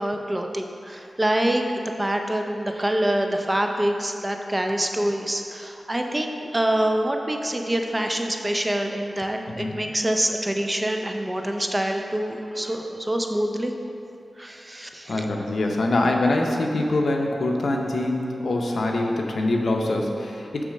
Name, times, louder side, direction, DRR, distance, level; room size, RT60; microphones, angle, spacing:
voice 1, 0.0-13.7 14.4-15.3, right 1 dB, 20° right, 3 dB, 0.5 m, -26 dB
voice 2, 9.5-9.8 15.1-20.6, left 2 dB, 75° left, 1 dB, 0.7 m, -24 dB
8.3 x 3.2 x 6.3 m, 2.6 s
wide cardioid pair, 105°, 0 cm